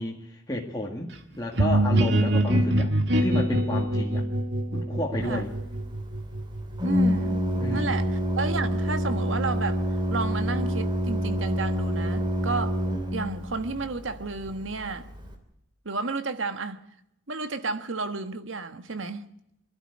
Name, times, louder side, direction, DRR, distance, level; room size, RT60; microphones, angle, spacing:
voice 1, 0.0-2.9 3.2-4.3 4.7-5.5 7.5-8.1, left 1 dB, 20° left, 1.9 m, -31 dB
sound 1, 1.6-7.2, right 1 dB, 60° right, 1.7 m, -25 dB
Organ, 5.2-15.3, equal, 25° right, 3.0 m, -28 dB
voice 2, 6.8-7.4 7.7-9.8 10.1-12.8 13.1-15.1 15.8-16.8 17.3-19.3, right 3 dB, 80° right, 1.5 m, -32 dB
23.5 x 12.5 x 9.8 m
head